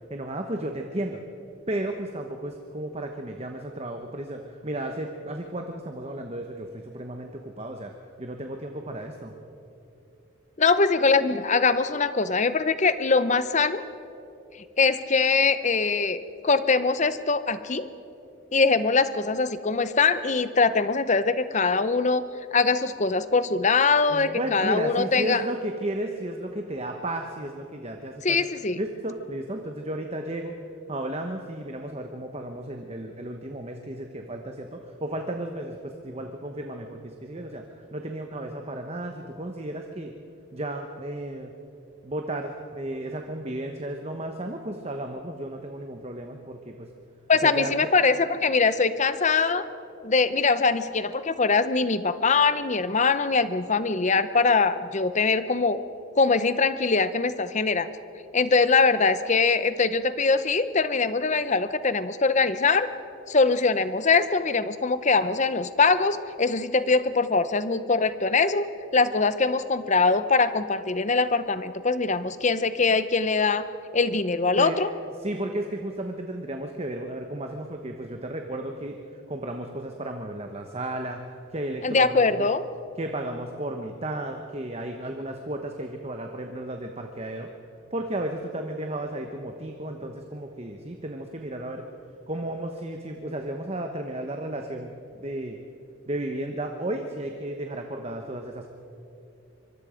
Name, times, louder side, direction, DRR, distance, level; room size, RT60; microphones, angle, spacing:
voice 1, 0.1-1.2 1.7-7.9 8.2-9.3 24.1-28.5 28.8-30.5 30.9-40.1 40.5-41.5 42.0-46.9 47.4-47.9 74.6-74.8 75.2-81.2 81.5-82.5 83.0-87.5 87.9-91.8 92.3-95.6 96.1-98.7, right 1 dB, 30° right, 4 dB, 1.1 m, -33 dB
voice 2, 10.6-13.8 14.8-17.9 18.5-22.2 22.5-25.4 28.2-28.8 47.3-49.7 50.0-55.8 56.2-57.9 58.3-62.9 63.3-68.7 68.9-73.6 73.9-74.9 81.8-82.6, left 4 dB, 35° left, 13 dB, 0.7 m, -22 dB
24.5 x 23.5 x 5.1 m, 2.8 s
head